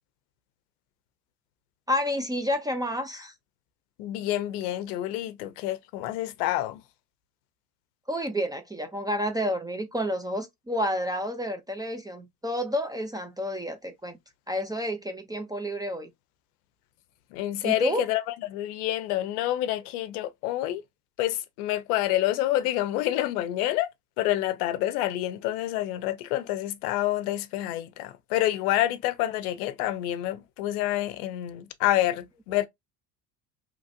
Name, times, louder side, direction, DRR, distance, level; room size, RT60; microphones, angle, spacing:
voice 1, 1.9-3.3 8.1-14.2 14.5-16.1 17.6-18.0, equal, 10° right, 0.4 m, -30 dB
voice 2, 4.0-6.8 17.3-20.8 21.2-23.9 24.2-32.7, left 14 dB, 70° left, 0.6 m, -28 dB
3.1 x 2.4 x 2.4 m
hypercardioid pair, 70°, 47 cm